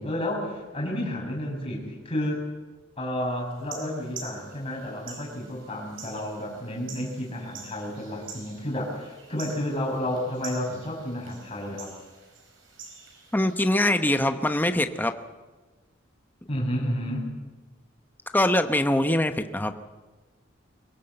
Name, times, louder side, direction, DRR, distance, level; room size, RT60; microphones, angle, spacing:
voice 1, 0.0-2.4 3.0-11.9 16.5-17.3, left 1 dB, 30° left, -2 dB, 6.9 m, -31 dB
sound 1, 3.5-13.5, right 5 dB, 80° right, 5.2 m, -46 dB
voice 2, 13.3-15.1 18.3-19.7, left 1 dB, 10° left, 8 dB, 0.9 m, -23 dB
23.5 x 18.0 x 7.8 m, 1.2 s
head